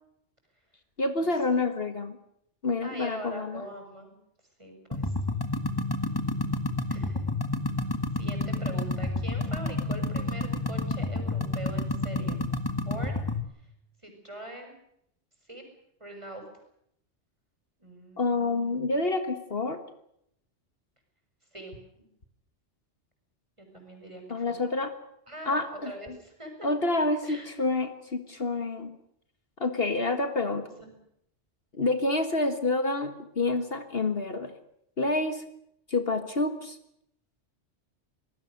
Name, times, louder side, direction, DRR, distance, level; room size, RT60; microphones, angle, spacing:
voice 1, 1.0-2.2 2.6-3.6 18.2-19.8 24.3-24.9 25.5-25.9 26.6-29.0 29.6-30.7 31.7-34.5 35.0-35.4 35.9-36.8, left 2 dB, 55° left, 9 dB, 1.9 m, -28 dB
voice 2, 2.8-4.1 4.6-5.1 6.9-7.3 8.1-12.4 12.9-13.1 14.0-14.8 15.5-15.6 16.0-16.4 17.8-19.0 21.5-22.0 23.6-24.6 25.3-26.7 27.2-27.5 30.8-30.9, right 1 dB, 25° right, 4 dB, 6.9 m, -43 dB
sound 1, 4.9-13.4, left 2 dB, 20° left, 1.8 m, -30 dB
26.5 x 19.5 x 6.7 m, 0.73 s
omnidirectional pair, 1.2 m